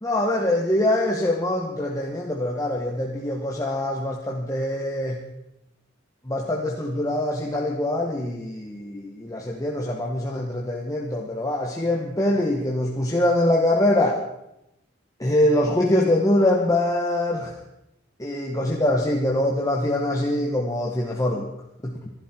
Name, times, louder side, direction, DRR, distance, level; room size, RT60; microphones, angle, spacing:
voice 1, 0.0-5.2 6.2-14.2 15.2-17.6 18.2-21.5 21.8-21.9, left 1 dB, 20° left, 0 dB, 1.6 m, -23 dB
25.5 x 11.5 x 4.6 m, 0.84 s
head